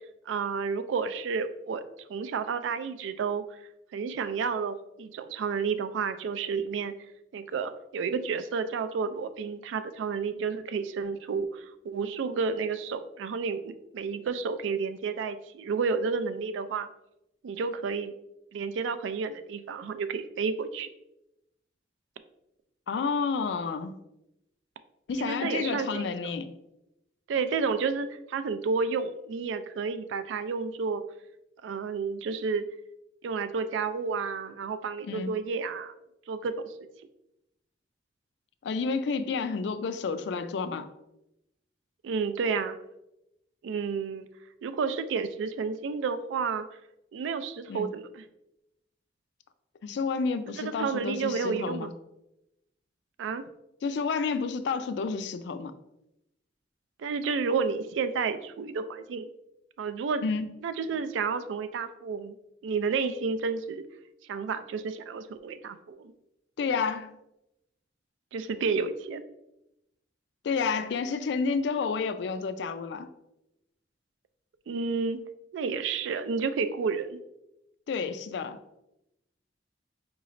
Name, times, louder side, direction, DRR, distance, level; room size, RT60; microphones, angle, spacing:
voice 1, 0.3-1.8 2.1-3.4 3.9-6.9 7.3-16.9 17.4-18.1 18.5-20.9 25.2-26.1 27.3-31.0 31.6-32.6 33.2-35.9 36.3-36.5 42.0-42.7 43.6-44.3 44.6-46.6 47.1-48.2 50.6-51.9 53.2-53.5 57.0-59.3 59.8-60.2 60.6-62.3 62.6-63.8 64.3-66.1 68.3-69.2 74.7-75.2 75.5-77.2, right 5 dB, 85° right, 0.3 m, -31 dB
voice 2, 22.9-24.0 25.1-26.5 35.0-35.3 38.6-40.9 47.7-47.9 49.8-51.9 53.8-55.8 60.2-60.5 66.6-67.2 70.4-73.1 77.9-78.6, left 5 dB, 70° left, 0.3 m, -30 dB
4.8 x 3.0 x 2.5 m
head